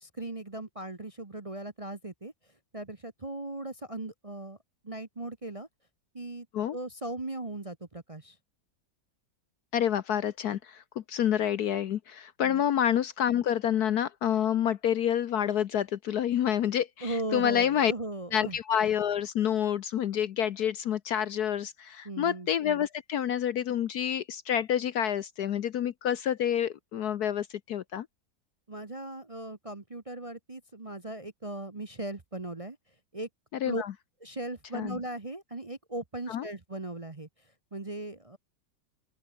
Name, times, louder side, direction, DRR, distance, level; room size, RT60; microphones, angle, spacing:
voice 1, 0.0-2.3 2.7-4.6 4.8-5.7 6.1-6.5 6.7-8.4 12.4-12.6 17.0-18.6 22.0-22.5 28.7-32.8 33.1-33.3 33.6-33.8 34.2-37.3 37.7-38.4, right 2 dB, 20° right, 1.0 m, -38 dB
voice 2, 9.7-10.8 11.1-17.9 18.3-28.1 33.6-33.9 34.7-35.0 36.3-36.5, left 9 dB, 60° left, 1.2 m, -28 dB
open air
omnidirectional pair, 2.1 m